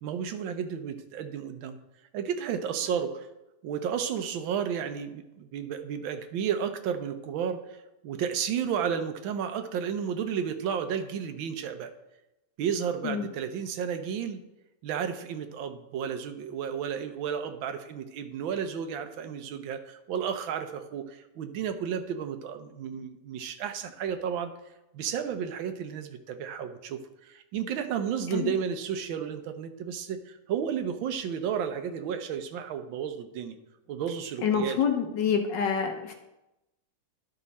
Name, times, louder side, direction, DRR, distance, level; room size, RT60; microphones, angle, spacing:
voice 1, 0.0-1.8 2.1-3.3 3.6-7.6 8.0-11.9 12.6-14.4 14.8-24.5 24.9-33.6 33.9-34.8, right 7 dB, 75° right, 8 dB, 1.4 m, -32 dB
voice 2, 34.4-36.1, left 7 dB, 65° left, 5 dB, 1.4 m, -27 dB
11.5 x 5.3 x 4.1 m, 0.93 s
omnidirectional pair, 2.3 m